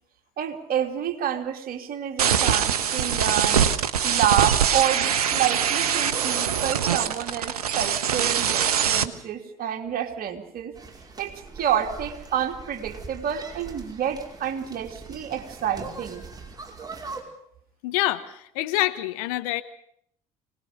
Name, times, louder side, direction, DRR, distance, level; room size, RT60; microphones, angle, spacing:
voice 1, 0.4-3.7 4.0-10.7 11.2-16.2, right 9 dB, 50° right, 4 dB, 2.9 m, -28 dB
sound 1, 2.2-9.0, right 8 dB, 85° right, 1.0 m, -23 dB
sound 2, 10.8-17.2, right 3 dB, 20° right, 5.4 m, -41 dB
voice 2, 17.8-19.6, left 17 dB, 70° left, 11 dB, 1.3 m, -26 dB
25.0 x 19.5 x 6.9 m, 0.67 s
hypercardioid pair, 55°, 19 cm